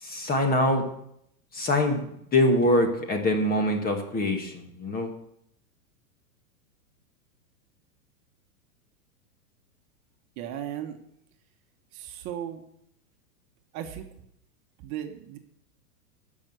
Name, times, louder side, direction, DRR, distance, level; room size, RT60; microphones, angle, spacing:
voice 1, 0.0-0.9 1.5-2.0 2.3-5.1, left 1 dB, 20° left, 5 dB, 1.8 m, -24 dB
voice 2, 10.4-11.0 11.9-12.6 13.7-14.1 14.8-15.4, right 10 dB, 40° right, 5 dB, 1.3 m, -36 dB
12.0 x 6.3 x 8.1 m, 0.73 s
hypercardioid pair, 130°, 46 cm